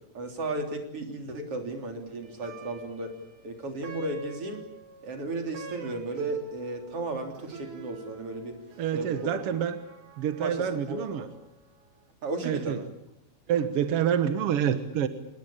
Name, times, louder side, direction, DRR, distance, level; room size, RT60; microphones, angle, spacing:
voice 1, 0.1-3.1 3.4-4.6 5.0-8.6 8.9-9.4 10.4-11.4 12.2-12.9, right 2 dB, 40° right, 4 dB, 4.2 m, -35 dB
Plucked string instrument, 2.2-11.6, right 6 dB, 90° right, 5.8 m, -44 dB
voice 2, 8.8-9.8 10.2-11.2 12.4-12.8 13.5-15.1, right 9 dB, 60° right, 10 dB, 1.6 m, -27 dB
26.5 x 21.5 x 8.7 m, 0.83 s
omnidirectional pair, 4.2 m